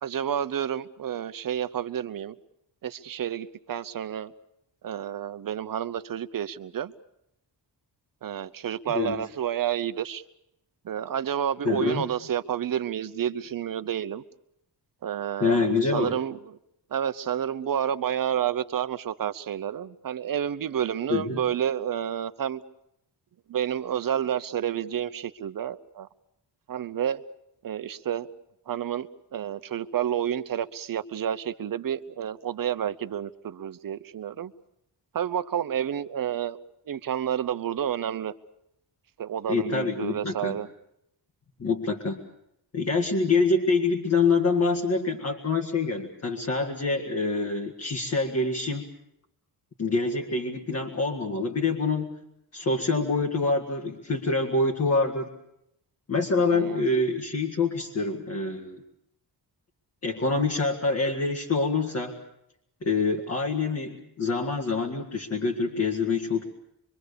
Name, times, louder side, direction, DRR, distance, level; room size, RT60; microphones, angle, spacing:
voice 1, 0.0-2.4 2.8-4.3 4.8-6.9 8.2-10.2 10.8-14.2 15.0-16.6 16.9-22.6 23.5-26.1 26.7-27.2 27.6-28.3 28.7-34.5 35.1-36.6 36.9-38.3 39.2-40.7 56.4-56.8, right 9 dB, 55° right, 13 dB, 0.9 m, -30 dB
voice 2, 8.9-9.2 11.6-12.0 15.4-16.1 21.1-21.4 39.5-40.6 41.6-42.2 42.7-48.9 49.8-52.1 52.5-55.3 56.1-58.8 60.0-62.1 62.8-66.4, left 3 dB, 35° left, 1 dB, 2.0 m, -26 dB
25.5 x 24.0 x 6.8 m, 0.80 s
wide cardioid pair, 165°, 42 cm